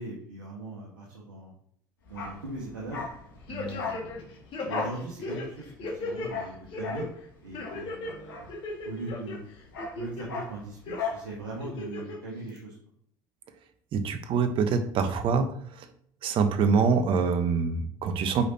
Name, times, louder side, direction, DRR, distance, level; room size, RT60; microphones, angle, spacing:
voice 1, 0.0-1.5 2.1-3.0 3.5-4.3 4.6-7.1 7.4-8.5 8.8-9.4 9.9-12.7, right 2 dB, 90° right, -5 dB, 1.8 m, -39 dB
Bark, 2.1-9.1 9.4-11.3 11.5-11.7, left 4 dB, 85° left, 1.7 m, -37 dB
sound 1, 3.5-4.2 4.5-6.3 6.7-7.1 7.5-8.1 8.5-9.4 9.8-10.4 10.9-11.0 11.6-12.2 12.6-12.7, left 2 dB, 50° left, 2.2 m, -36 dB
voice 2, 13.9-15.9 16.2-18.5, right 5 dB, 55° right, 9 dB, 1.1 m, -25 dB
8.4 x 5.2 x 3.0 m, 0.64 s
hypercardioid pair, 70°, 11 cm